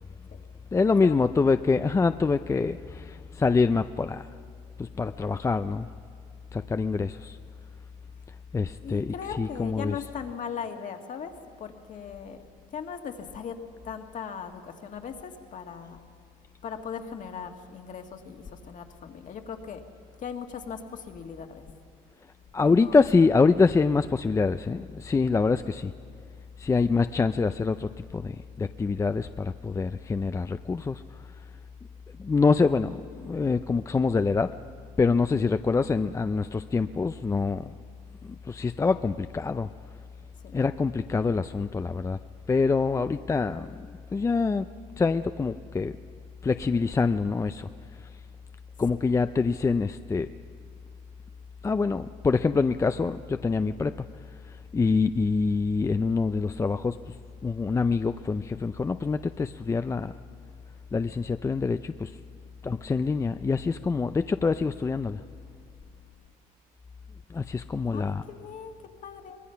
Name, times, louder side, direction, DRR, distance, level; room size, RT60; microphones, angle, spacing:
voice 1, 0.7-4.3 4.8-5.9 6.5-7.4 8.5-10.0 22.5-25.9 26.6-31.0 32.2-34.5 35.0-37.7 38.2-39.7 40.5-42.2 42.5-44.7 45.0-46.0 46.4-47.7 48.8-50.3 51.6-53.9 54.7-57.0 57.4-60.1 60.9-62.1 62.6-65.2 67.3-68.2, left 4 dB, 20° left, 10 dB, 0.4 m, -25 dB
voice 2, 8.8-12.4 12.7-13.6 13.8-16.0 16.6-19.8 20.2-21.6 22.6-23.0 40.4-40.5 67.9-69.4, left 7 dB, 55° left, 4 dB, 1.9 m, -38 dB
23.5 x 19.5 x 5.8 m, 2.3 s
supercardioid pair, 90°, 16 cm